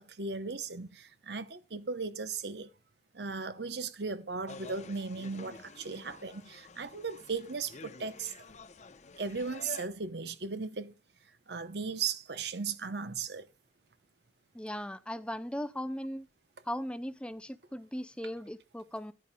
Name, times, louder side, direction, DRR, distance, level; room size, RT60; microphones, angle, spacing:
voice 1, 0.0-2.7 3.1-8.3 9.2-10.9 11.5-13.5, right 4 dB, 70° right, 0.9 m, -37 dB
sound 1, 4.5-9.9, left 3 dB, 40° left, 0.7 m, -49 dB
voice 2, 14.5-16.3 16.6-19.1, equal, 5° left, 0.5 m, -38 dB
13.5 x 11.0 x 2.3 m
head